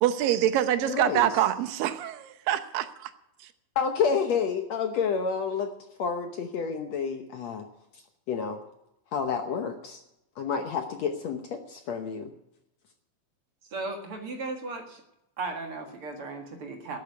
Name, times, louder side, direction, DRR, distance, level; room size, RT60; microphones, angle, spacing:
voice 1, 0.0-3.1, right 11 dB, 80° right, 11 dB, 2.5 m, -25 dB
voice 2, 0.8-1.3 3.8-5.7 6.0-7.6 8.3-8.6 9.1-10.0 10.4-12.3, left 6 dB, 65° left, 6 dB, 1.8 m, -29 dB
voice 3, 13.7-15.0 15.4-17.0, right 3 dB, 45° right, 4 dB, 2.2 m, -36 dB
12.5 x 8.5 x 9.4 m, 0.85 s
omnidirectional pair, 4.0 m